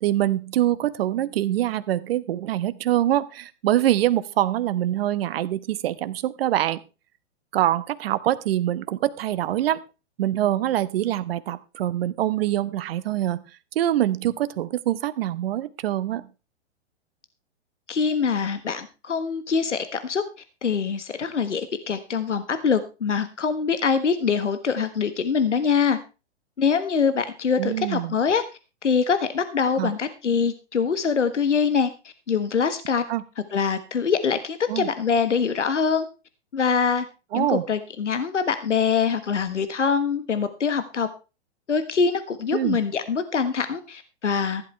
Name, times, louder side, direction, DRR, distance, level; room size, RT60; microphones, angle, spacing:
voice 1, 0.0-6.8 7.5-9.8 10.2-13.4 13.7-16.2 27.6-28.1 29.8-29.9 33.1-33.2 34.7-34.9 37.3-37.6 42.5-42.8, right 13 dB, 55° right, 15 dB, 1.2 m, -24 dB
voice 2, 17.9-20.2 20.6-26.0 26.6-28.4 28.8-33.0 33.5-36.0 36.5-37.0 37.3-41.1 41.7-44.6, left 6 dB, 85° left, 10 dB, 1.5 m, -24 dB
15.5 x 11.5 x 3.3 m, 0.31 s
hypercardioid pair, 115°, 35 cm